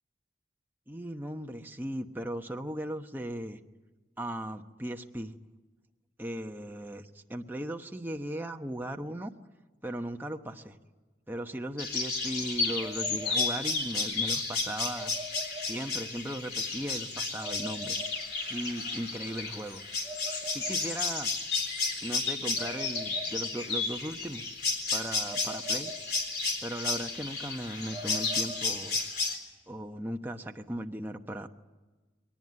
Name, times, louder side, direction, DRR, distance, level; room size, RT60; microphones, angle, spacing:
voice 1, 0.9-3.6 4.2-5.3 6.2-9.3 9.8-10.8 11.3-15.1 15.6-18.0 18.4-19.8 20.5-21.3 22.0-24.4 24.9-25.9 26.6-29.0 29.7-31.5, right 1 dB, 10° right, 4 dB, 1.0 m, -37 dB
sound 1, 11.8-29.4, left 3 dB, 60° left, 3.8 m, -32 dB
22.0 x 19.0 x 9.5 m, 1.3 s
head